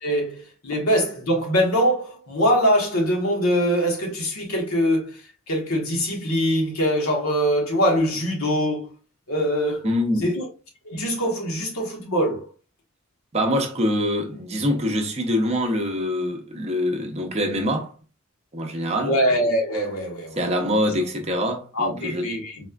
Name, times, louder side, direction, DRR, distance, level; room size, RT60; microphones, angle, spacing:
voice 1, 0.0-5.2 5.5-8.9 9.3-9.8 10.2-10.4 10.8-12.4 19.0-20.4 21.7-22.6, equal, 75° left, 1.1 m, -23 dB
voice 2, 9.8-10.3 13.3-17.9 18.5-19.1 20.4-22.2, equal, 30° right, 0.6 m, -24 dB
4.1 x 2.3 x 2.2 m
head